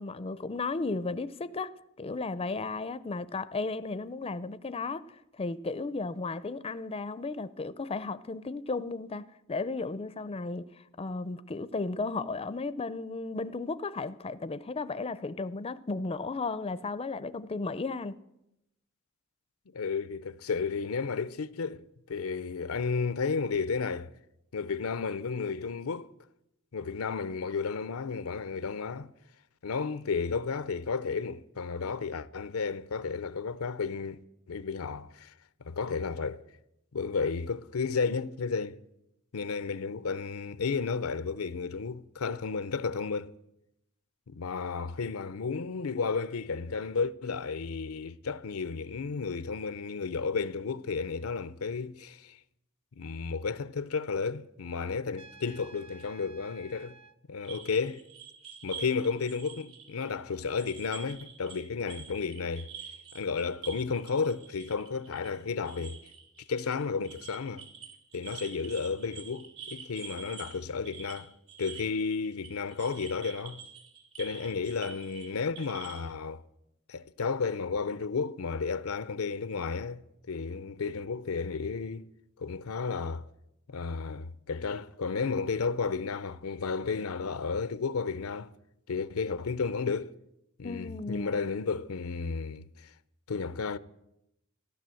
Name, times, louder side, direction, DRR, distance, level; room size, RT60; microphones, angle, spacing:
voice 1, 0.0-10.7 11.0-18.2 90.6-91.5, left 3 dB, 25° left, 0.5 m, -34 dB
voice 2, 19.7-24.1 24.5-26.1 26.7-29.1 29.6-34.2 34.5-35.3 35.6-36.4 36.9-38.8 39.3-43.3 44.3-52.4 53.0-57.0 57.3-58.0 58.6-62.7 63.1-66.0 66.5-67.6 68.1-73.6 74.2-76.4 76.9-80.0 80.3-82.1 82.4-83.3 83.7-88.5 88.9-90.1 90.6-92.9 93.3-93.8, left 5 dB, 90° left, 0.6 m, -32 dB
Trumpet, 55.1-57.2, right 3 dB, 30° right, 0.7 m, -53 dB
sound 1, 57.4-61.6 61.9-76.1, right 7 dB, 75° right, 3.5 m, -47 dB
15.5 x 12.0 x 7.7 m
head